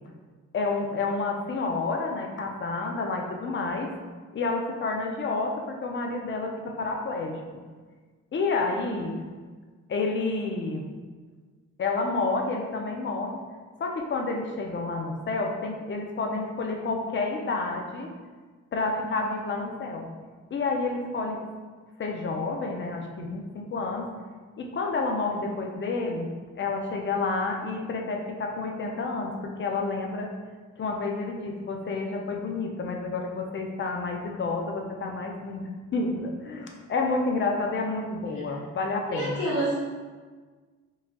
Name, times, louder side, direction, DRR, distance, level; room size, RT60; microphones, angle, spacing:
voice 1, 0.5-3.9 4.3-7.4 8.3-9.2 9.9-10.9 11.8-13.4 13.8-18.1 18.7-20.1 20.5-21.4 22.0-24.1 24.6-26.3 26.6-30.3 30.8-39.5, left 3 dB, 40° left, 2 dB, 0.6 m, -29 dB
voice 2, 39.1-39.8, right 1 dB, 85° left, -8 dB, 1.2 m, -29 dB
4.6 x 2.8 x 2.3 m, 1.5 s
cardioid pair, 90°, 30 cm